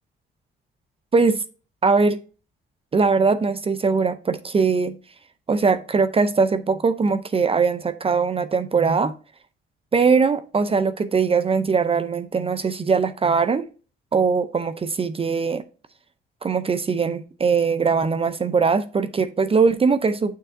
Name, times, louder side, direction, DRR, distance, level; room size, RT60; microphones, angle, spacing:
voice 1, 1.1-1.4 1.8-2.2 2.9-5.0 5.5-9.1 9.9-13.7 14.1-15.6 16.4-20.4, right 5 dB, 30° right, 0.5 m, -21 dB
6.6 x 6.4 x 2.6 m
cardioid pair, 90°, 20 cm